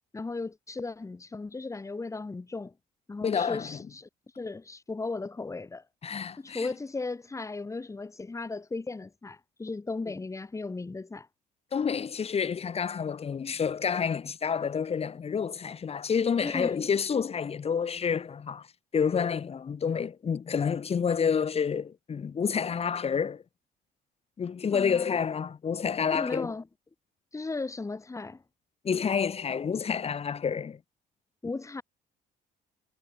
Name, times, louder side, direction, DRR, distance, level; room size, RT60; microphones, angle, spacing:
voice 1, 0.1-2.7 3.1-4.1 4.4-5.8 6.4-11.3 16.4-16.8 24.7-25.2 26.1-26.7 27.3-28.4 31.4-31.8, left 3 dB, 20° left, 2.6 m, -36 dB
voice 2, 3.2-3.8 6.0-6.7 11.7-18.6 18.9-23.4 24.4-26.5 28.8-30.8, left 6 dB, 35° left, 4.0 m, -29 dB
cardioid pair, 110°, 17 cm